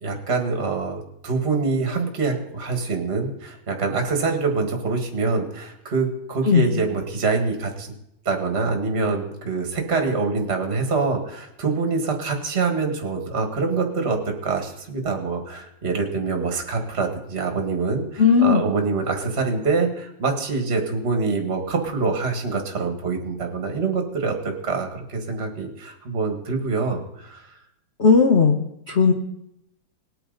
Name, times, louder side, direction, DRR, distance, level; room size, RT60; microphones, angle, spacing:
voice 1, 0.0-7.9 8.3-14.2 14.4-27.5, right 4 dB, 35° right, 3 dB, 2.0 m, -25 dB
voice 2, 18.2-18.6 28.0-28.5 28.9-29.1, left 5 dB, 40° left, 2 dB, 1.1 m, -15 dB
20.0 x 8.8 x 4.0 m, 0.79 s
omnidirectional pair, 2.1 m